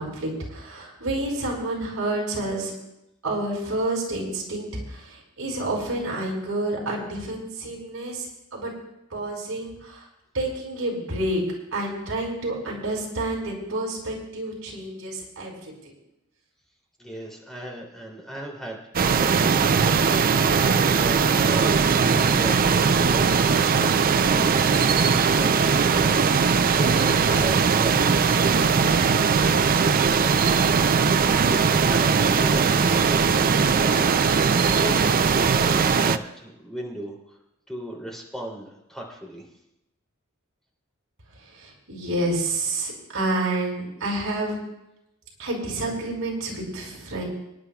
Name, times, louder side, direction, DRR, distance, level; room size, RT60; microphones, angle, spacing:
voice 1, 0.0-2.7 3.2-8.3 8.5-8.7 9.1-10.0 10.3-11.4 11.7-15.5 41.6-44.6 45.4-47.2, right 2 dB, 70° right, -3 dB, 5.0 m, -29 dB
voice 2, 17.0-30.7 31.4-37.4 37.7-39.4, right 1 dB, ahead, -3 dB, 3.1 m, -37 dB
sound 1, 18.9-36.2, right 5 dB, 40° right, 0.5 m, -20 dB
26.5 x 11.0 x 2.4 m, 0.88 s
head